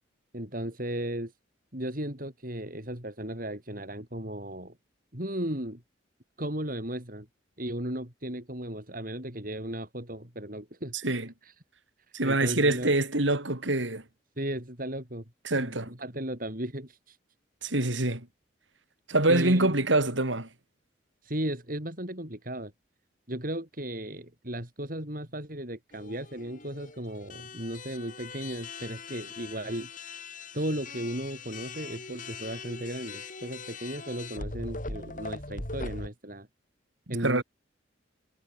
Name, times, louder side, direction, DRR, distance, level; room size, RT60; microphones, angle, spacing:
voice 1, 0.3-1.3 1.7-4.8 5.1-5.8 6.4-7.3 7.6-10.9 11.4-11.5 12.1-12.9 14.4-15.2 15.6-17.2 18.1-18.2 19.3-19.7 21.2-22.7 23.3-29.9 30.5-36.5 37.1-37.4, right 1 dB, 45° right, 5.9 m, -35 dB
voice 2, 12.1-14.0 15.4-15.9 17.6-18.3 19.1-20.5 37.2-37.4, right 2 dB, 75° right, 4.2 m, -25 dB
sound 1, 25.9-36.1, left 3 dB, 45° left, 5.1 m, -41 dB
head